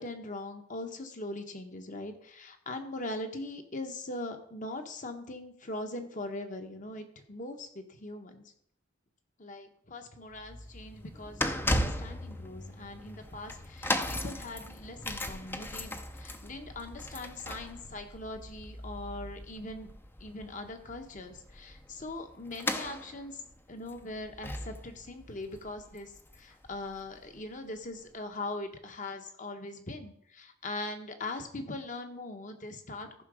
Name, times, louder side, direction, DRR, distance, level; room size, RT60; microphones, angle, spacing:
voice 1, 0.0-8.4 9.4-19.9 20.2-23.4 23.7-33.2, left 2 dB, 40° left, 6 dB, 1.2 m, -41 dB
sound 1, 10.3-26.7 26.9-27.2 28.0-28.1, left 1 dB, 10° left, 0.6 m, -37 dB
14.5 x 5.9 x 5.0 m, 0.70 s
head